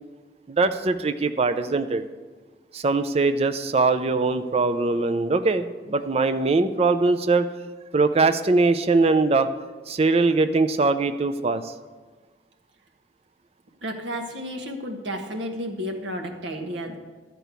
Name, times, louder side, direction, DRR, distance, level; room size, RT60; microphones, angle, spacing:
voice 1, 0.5-2.0 2.7-7.5 7.9-9.5 9.9-11.7, right 3 dB, 35° right, 10 dB, 0.5 m, -21 dB
voice 2, 13.8-17.0, equal, 85° right, 3 dB, 1.3 m, -32 dB
12.0 x 4.5 x 8.1 m, 1.4 s
head